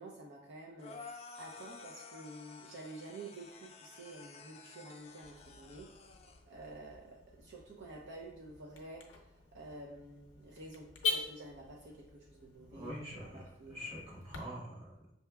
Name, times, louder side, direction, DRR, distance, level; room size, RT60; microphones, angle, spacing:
voice 1, 0.0-5.9 6.5-13.9, right 2 dB, 65° right, -2 dB, 0.5 m, -50 dB
sound 1, 0.8-6.4, left 4 dB, 35° left, 0.3 m, -52 dB
Car / Alarm, 5.2-14.4, left 4 dB, 70° left, 0.6 m, -44 dB
voice 2, 12.7-15.1, equal, 30° right, -5 dB, 1.2 m, -45 dB
5.6 x 2.7 x 2.2 m, 0.86 s
head